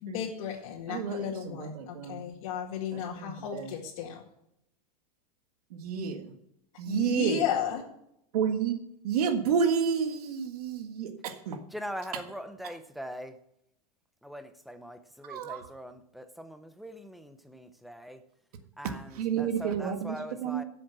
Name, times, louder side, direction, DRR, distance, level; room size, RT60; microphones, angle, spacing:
voice 1, 0.0-4.2 6.9-7.8, left 8 dB, 60° left, -2 dB, 2.0 m, -34 dB
voice 2, 0.9-2.3 2.9-3.7 5.7-6.3 6.8-7.4 8.3-11.6 12.1-12.2 15.3-15.6 18.8-20.6, right 7 dB, 75° right, 6 dB, 1.7 m, -30 dB
voice 3, 11.7-13.4 14.2-18.2 18.8-20.6, equal, ahead, 9 dB, 0.6 m, -42 dB
12.5 x 7.6 x 6.1 m, 0.77 s
supercardioid pair, 165°, 19 cm